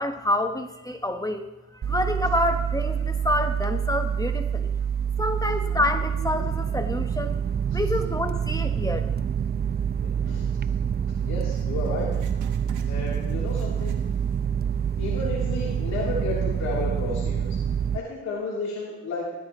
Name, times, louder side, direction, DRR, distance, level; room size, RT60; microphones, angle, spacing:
voice 1, 0.0-1.5 1.9-4.7 5.2-7.4 7.7-9.0, left 1 dB, 10° left, 6 dB, 1.0 m, -27 dB
sound 1, 1.8-18.0, right 8 dB, 35° right, 0.5 m, -27 dB
voice 2, 10.0-10.5 11.2-12.1 12.9-13.9 15.0-17.6 17.9-19.3, left 3 dB, 60° left, -6 dB, 3.3 m, -32 dB
Writing, 11.5-14.5 14.8-14.9 15.6-15.7, right 9 dB, 80° right, 1.6 m, -48 dB
16.5 x 13.5 x 3.0 m, 1.0 s
cardioid pair, 90°, 30 cm